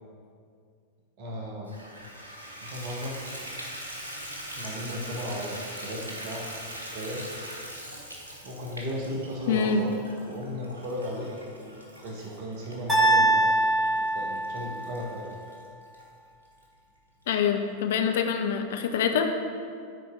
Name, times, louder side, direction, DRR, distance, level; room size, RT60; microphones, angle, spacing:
voice 1, 1.2-1.7 2.6-3.2 4.5-6.5 6.8-7.2 8.4-9.9 10.2-11.3 11.5-11.7 12.0-13.6 13.9-15.2, equal, 45° right, -1 dB, 1.3 m, -35 dB
Water tap faucet / Bathtub (filling or washing), 1.7-16.0 16.6-16.7 17.2-17.3 17.6-17.7, right 1 dB, 75° right, 1.3 m, -42 dB
voice 2, 9.5-9.8 17.3-19.3, left 6 dB, 55° left, 5 dB, 0.7 m, -25 dB
sound 1, 12.9-15.0, right 1 dB, ahead, 2.1 m, -23 dB
9.8 x 4.3 x 5.1 m, 2.3 s
figure-of-eight pair, 90°, 0 cm